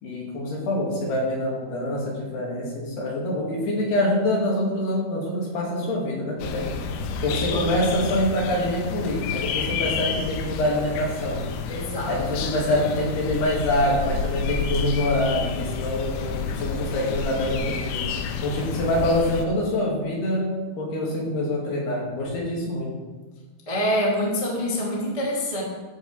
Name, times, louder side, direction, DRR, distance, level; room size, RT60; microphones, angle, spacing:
voice 1, 0.0-6.7 7.2-11.5 12.1-20.5 20.8-22.9, left 1 dB, 55° left, -3 dB, 4.5 m, -25 dB
sound 1, 6.4-19.4, left 5 dB, 85° left, 3.5 m, -30 dB
voice 2, 11.7-12.1 23.6-25.6, equal, 20° left, -4 dB, 0.8 m, -25 dB
13.0 x 5.7 x 7.4 m, 1.3 s
omnidirectional pair, 5.9 m